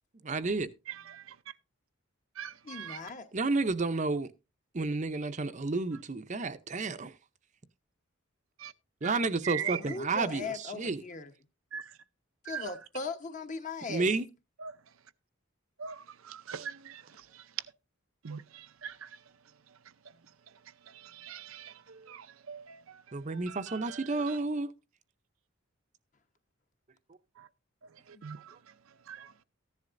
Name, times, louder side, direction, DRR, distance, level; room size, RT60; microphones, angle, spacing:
voice 1, 0.2-0.7 3.3-4.3 4.7-7.1 9.0-11.0 13.9-14.3 23.1-24.7, right 3 dB, 35° right, 0.6 m, -31 dB
voice 2, 0.9-1.4 2.4-3.1 8.6-8.7 9.0-10.0 11.7-12.0 12.4-12.8 14.6-14.8 15.8-17.7 18.2-19.2 19.7-20.2 20.5-24.4 27.9-29.4, right 8 dB, 75° right, 0.6 m, -43 dB
voice 3, 2.6-3.3 9.5-11.3 12.4-14.2 28.1-28.2, left 3 dB, 35° left, 1.0 m, -39 dB
14.5 x 10.5 x 2.6 m
head